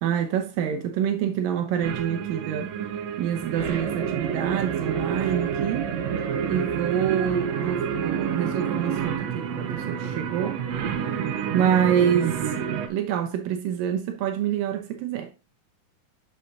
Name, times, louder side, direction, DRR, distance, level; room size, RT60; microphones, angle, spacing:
voice 1, 0.0-2.7 3.2-5.9 6.5-10.6 11.5-12.5 12.9-15.3, right 9 dB, 85° right, 2.6 m, -26 dB
sound 1, 1.8-12.9, right 7 dB, 65° right, 1.8 m, -28 dB
7.6 x 6.4 x 2.6 m
omnidirectional pair, 3.9 m